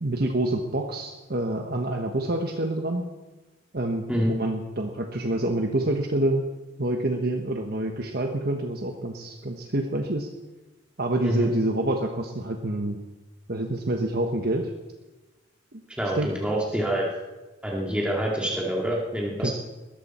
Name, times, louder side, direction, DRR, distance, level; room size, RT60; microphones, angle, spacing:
voice 1, 0.0-3.0 3.7-6.5 6.8-10.3 11.0-13.0 13.5-14.7 15.7-15.8 16.1-16.3 19.4-19.5, right 1 dB, 50° right, 3 dB, 1.2 m, -27 dB
voice 2, 16.0-17.0 17.6-19.5, equal, 5° right, -3 dB, 2.3 m, -26 dB
20.5 x 14.0 x 4.4 m, 1.1 s
head